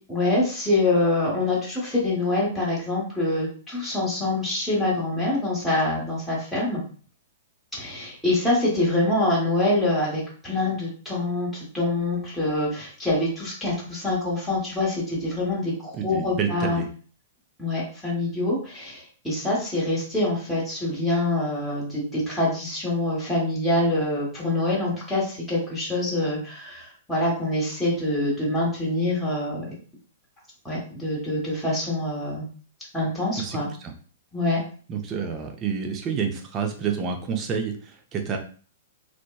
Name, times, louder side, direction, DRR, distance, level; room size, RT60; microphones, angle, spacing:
voice 1, 0.1-6.8 7.8-16.8 17.6-29.6 30.6-32.5 32.9-33.7 34.3-34.6, left 2 dB, ahead, -7 dB, 1.1 m, -25 dB
voice 2, 15.9-16.9 33.4-33.9 34.9-38.4, right 6 dB, 25° right, 4 dB, 0.5 m, -29 dB
2.7 x 2.1 x 2.2 m, 0.41 s
hypercardioid pair, 130°, 0 cm